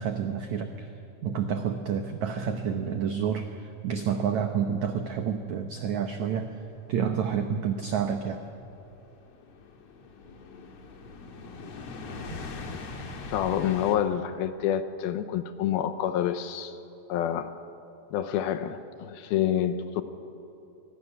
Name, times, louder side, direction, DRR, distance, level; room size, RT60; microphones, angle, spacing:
voice 1, 0.0-6.6 6.9-8.4 12.3-12.4, right 7 dB, 80° right, 6 dB, 1.6 m, -29 dB
sound 1, 6.9-14.0, left 3 dB, 50° left, 2.3 m, -42 dB
voice 2, 13.3-16.8 17.1-17.5 18.1-20.0, left 10 dB, 75° left, 10 dB, 2.5 m, -28 dB
24.0 x 17.5 x 10.0 m, 2.8 s
omnidirectional pair, 4.8 m